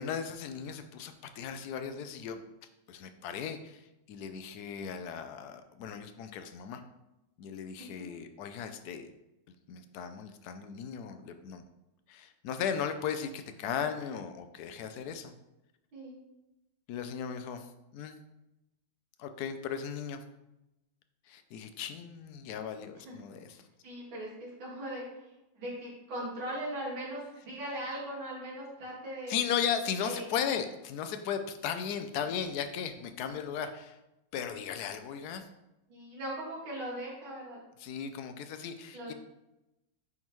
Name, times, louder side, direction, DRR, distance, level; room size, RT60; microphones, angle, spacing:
voice 1, 0.0-2.4 2.9-6.8 7.4-9.1 9.7-11.6 12.1-15.3 16.9-18.2 19.2-20.2 21.3-23.6 29.3-34.0 34.3-35.5 37.8-39.1, left 7 dB, 75° left, 8 dB, 0.9 m, -36 dB
voice 2, 23.8-29.4 30.0-30.3 35.9-37.6 38.9-39.1, right 1 dB, 85° right, -5 dB, 2.7 m, -39 dB
9.5 x 3.7 x 3.0 m, 0.94 s
omnidirectional pair, 2.1 m